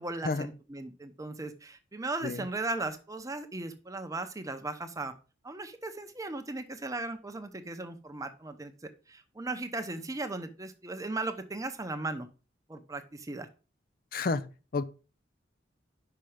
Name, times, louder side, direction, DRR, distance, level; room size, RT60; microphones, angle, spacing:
voice 1, 0.0-5.1 5.4-8.7 9.1-12.3 12.7-13.5, right 2 dB, 20° right, 0.7 m, -37 dB
voice 2, 14.1-14.8, left 4 dB, 50° left, 0.4 m, -31 dB
5.8 x 5.2 x 4.9 m
head